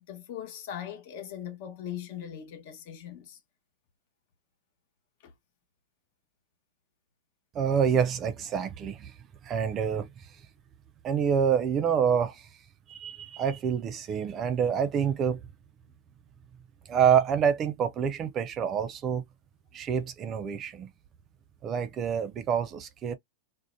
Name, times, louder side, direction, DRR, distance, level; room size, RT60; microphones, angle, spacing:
voice 1, 0.0-3.4 5.2-5.3, left 10 dB, 50° left, 0.9 m, -40 dB
voice 2, 7.5-9.1 9.4-10.1 11.0-12.5 12.9-15.4 16.9-19.2 19.7-20.9 21.6-23.1, right 7 dB, 25° right, 0.3 m, -27 dB
2.6 x 2.1 x 2.5 m
supercardioid pair, 155°, 0 cm